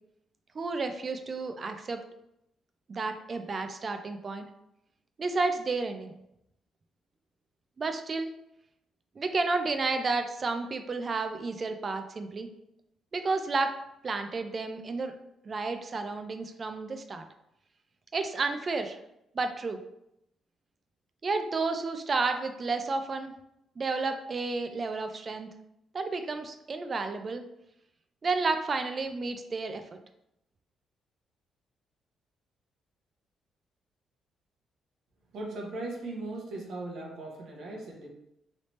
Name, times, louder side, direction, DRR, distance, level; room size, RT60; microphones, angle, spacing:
voice 1, 0.5-2.0 2.9-4.5 5.2-6.1 7.8-8.3 9.2-12.5 13.1-13.7 14.0-15.1 15.4-17.2 18.1-19.0 19.3-19.8 21.2-23.3 23.8-25.5 25.9-27.4 28.2-29.8, right 3 dB, 40° right, 7 dB, 0.3 m, -31 dB
voice 2, 35.3-38.1, right 2 dB, 70° right, -2 dB, 0.9 m, -38 dB
3.2 x 2.8 x 3.1 m, 0.82 s
cardioid pair, 90°, 0 cm